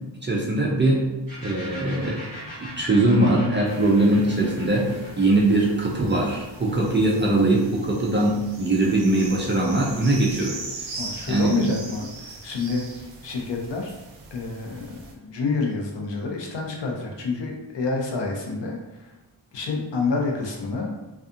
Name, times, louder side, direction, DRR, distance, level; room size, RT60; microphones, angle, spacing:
voice 1, 0.2-1.1 1.4-2.2 2.8-4.9 5.2-10.6 11.3-11.5, right 2 dB, 25° right, -3 dB, 0.3 m, -21 dB
sound 1, 1.3-8.8, equal, 15° left, 1.5 m, -42 dB
sound 2, 3.6-15.1, right 3 dB, 65° right, 0.6 m, -41 dB
voice 2, 11.0-13.9 14.3-19.1 19.5-21.0, left 3 dB, 65° left, 0 dB, 0.6 m, -28 dB
2.6 x 2.4 x 2.4 m, 1.0 s
wide cardioid pair, 145°, 46 cm